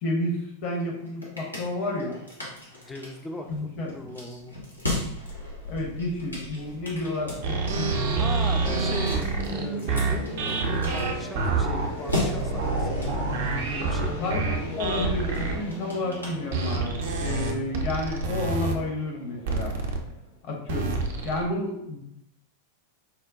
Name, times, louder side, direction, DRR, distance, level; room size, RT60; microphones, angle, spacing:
voice 1, 0.0-2.2 3.5-4.1 5.7-8.2 8.6-9.0 14.2-19.8 20.4-22.0, left 2 dB, 40° left, 0 dB, 0.8 m, -31 dB
sound 1, 0.8-17.0, left 2 dB, 85° left, 0.8 m, -38 dB
voice 2, 2.8-3.5 3.9-4.6 8.1-14.4, left 2 dB, 10° left, 4 dB, 0.4 m, -39 dB
sound 2, 6.6-20.5, right 1 dB, 65° left, 1.4 m, -38 dB
sound 3, 7.4-15.6 16.5-18.7 19.5-20.0 20.7-21.4, right 4 dB, 55° right, 0.5 m, -27 dB
4.3 x 2.1 x 2.5 m, 0.79 s
figure-of-eight pair, 90°, 0 cm